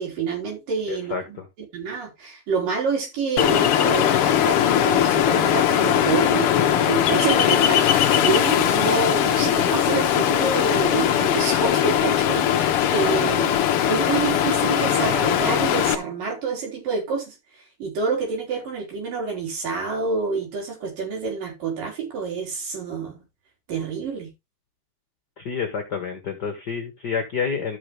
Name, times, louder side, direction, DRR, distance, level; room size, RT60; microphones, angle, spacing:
voice 1, 0.0-1.4 1.7-17.3 17.8-23.2 23.7-24.3, right 5 dB, 80° right, 6.3 m, -27 dB
voice 2, 0.9-1.5 25.4-27.8, left 6 dB, 50° left, 1.3 m, -29 dB
Ocean, 3.4-15.9, left 10 dB, 80° left, 1.3 m, -20 dB
13.5 x 6.1 x 3.3 m
omnidirectional pair, 3.9 m